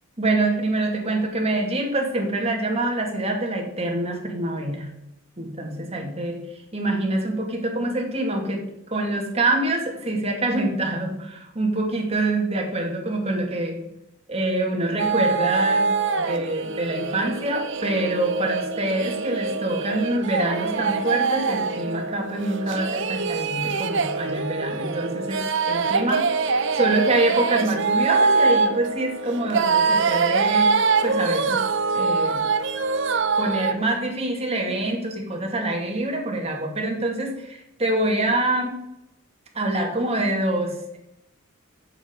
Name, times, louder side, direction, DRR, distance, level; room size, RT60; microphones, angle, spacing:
voice 1, 0.2-4.9 5.4-6.4 6.7-13.8 14.3-15.9 16.2-31.6 31.9-32.4 33.4-38.8 39.5-41.0, right 2 dB, 30° right, 1 dB, 2.5 m, -25 dB
sound 1, 15.0-33.7, right 4 dB, 55° right, 0.8 m, -24 dB
8.1 x 7.6 x 8.1 m, 0.85 s
head